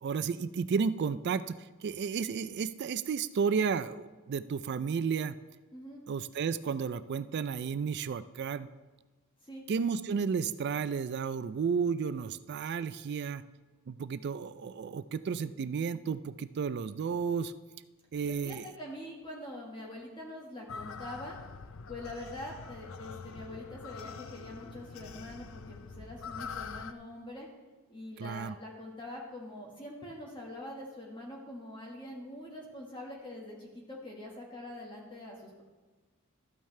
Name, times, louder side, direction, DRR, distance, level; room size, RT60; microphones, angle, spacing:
voice 1, 0.0-5.4 6.1-8.7 9.7-13.4 13.9-17.5 18.1-18.7 28.2-28.5, right 6 dB, 50° right, 14 dB, 0.3 m, -32 dB
voice 2, 5.7-6.0 9.4-9.6 18.3-21.4 21.9-27.5 27.9-35.6, left 1 dB, 25° left, -2 dB, 1.5 m, -44 dB
sound 1, 20.7-26.9, left 5 dB, 65° left, 0.5 m, -44 dB
13.0 x 9.0 x 3.2 m, 1.3 s
head